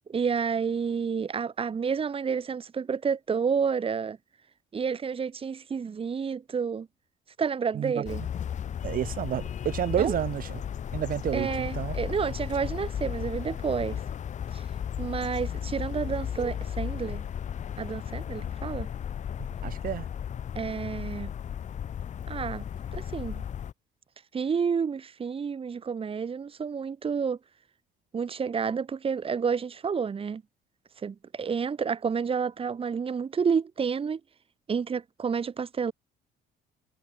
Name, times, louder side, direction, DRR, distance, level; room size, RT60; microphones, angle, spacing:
voice 1, 0.1-4.2 4.7-6.9 7.4-8.2 10.0-10.1 11.3-14.0 14.5-14.7 15.0-17.2 17.8-18.9 20.5-21.3 22.3-22.6 22.9-23.4 24.3-27.4 28.1-30.4 31.0-34.2 34.7-35.9, right 6 dB, 35° right, 2.8 m, -30 dB
sound 1, 8.1-23.7, left 9 dB, 45° left, 1.8 m, -35 dB
voice 2, 8.8-10.6 10.9-12.0 19.6-20.1, right 10 dB, 55° right, 4.5 m, -30 dB
cardioid pair, 110°, 17 cm